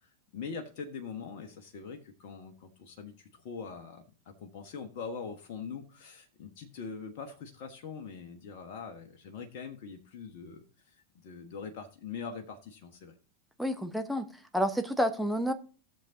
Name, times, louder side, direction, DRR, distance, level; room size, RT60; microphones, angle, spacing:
voice 1, 0.3-13.1, left 5 dB, 50° left, 1.4 m, -43 dB
voice 2, 13.6-14.3 14.5-15.5, equal, ahead, 1.1 m, -29 dB
17.5 x 6.9 x 2.8 m
figure-of-eight pair, 90°, 0 cm